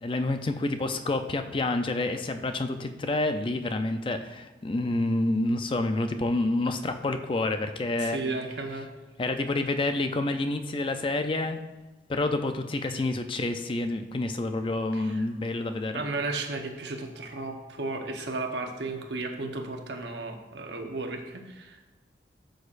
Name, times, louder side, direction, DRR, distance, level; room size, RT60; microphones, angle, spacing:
voice 1, 0.0-8.2 9.2-11.6 12.1-16.0, left 2 dB, 30° left, 7 dB, 0.4 m, -28 dB
voice 2, 8.0-8.9 12.9-13.0 14.9-15.2 15.9-21.9, right 3 dB, 75° right, 4 dB, 1.0 m, -34 dB
12.5 x 6.4 x 2.5 m, 1.1 s
head